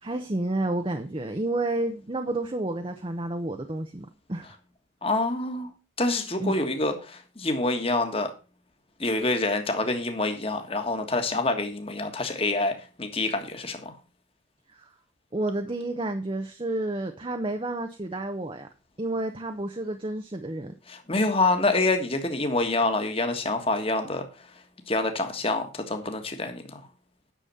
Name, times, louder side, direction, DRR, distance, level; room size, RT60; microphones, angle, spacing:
voice 1, 0.0-4.5 6.4-6.6 14.7-14.9 15.3-18.7 19.0-20.7, right 2 dB, 25° right, 6 dB, 0.7 m, -30 dB
voice 2, 5.0-5.7 6.0-8.3 9.0-13.9 20.9-24.2 24.9-26.8, left 2 dB, 30° left, 6 dB, 1.6 m, -26 dB
10.0 x 6.8 x 5.6 m, 0.32 s
head